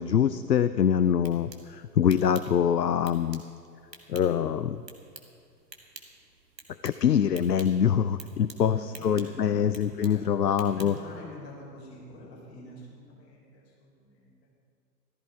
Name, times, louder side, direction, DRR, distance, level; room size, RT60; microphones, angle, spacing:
voice 1, 0.0-3.4 4.1-4.8 6.8-11.0, left 8 dB, 75° left, 13 dB, 0.6 m, -24 dB
sound 1, 1.0-11.2, right 3 dB, 80° right, 1.8 m, -51 dB
voice 2, 8.6-9.7 10.0-14.3, left 2 dB, 40° left, -3 dB, 4.3 m, -45 dB
14.5 x 14.0 x 4.5 m, 2.3 s
figure-of-eight pair, 115°, 49 cm